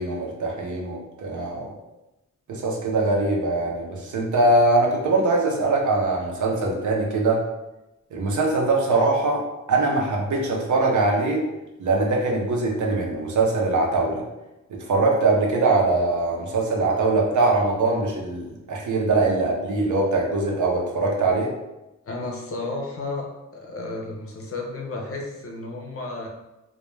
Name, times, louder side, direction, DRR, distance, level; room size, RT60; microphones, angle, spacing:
voice 1, 0.0-1.7 2.5-7.4 8.1-9.4 9.7-11.4 11.8-14.2 14.7-21.5, right 2 dB, 75° right, -1 dB, 0.6 m, -22 dB
voice 2, 22.0-26.3, left 2 dB, 50° left, 0 dB, 0.5 m, -32 dB
2.2 x 2.2 x 3.0 m, 0.97 s
wide cardioid pair, 115°, 30 cm